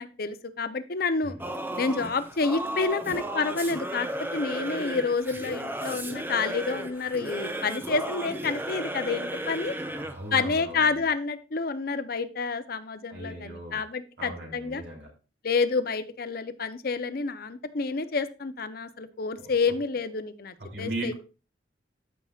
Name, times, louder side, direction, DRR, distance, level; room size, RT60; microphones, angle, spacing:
voice 1, 0.0-1.4 1.8-4.1 4.3-9.7 10.3-14.8 15.4-21.1, left 4 dB, 55° left, 12 dB, 0.7 m, -29 dB
Singing / Musical instrument, 1.4-10.3, right 1 dB, 10° right, 0.8 m, -34 dB
voice 2, 9.8-11.0 13.1-13.8 14.2-15.1 19.4-19.5 20.6-21.1, right 1 dB, 70° right, -1 dB, 3.3 m, -38 dB
13.5 x 5.7 x 2.4 m, 0.33 s
head